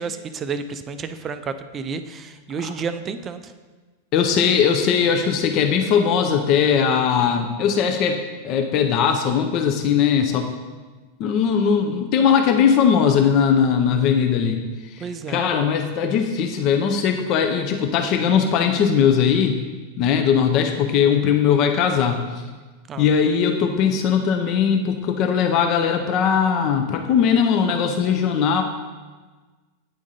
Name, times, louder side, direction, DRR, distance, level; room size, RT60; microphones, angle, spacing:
voice 1, 0.0-3.5 15.0-15.4 22.9-23.1, right 5 dB, 25° right, 11 dB, 0.4 m, -31 dB
voice 2, 4.1-10.5 11.2-14.6 14.9-19.6 20.0-22.4 23.0-28.6, left 7 dB, 40° left, 5 dB, 0.4 m, -19 dB
8.9 x 3.6 x 4.0 m, 1.3 s
figure-of-eight pair, 90°, 0 cm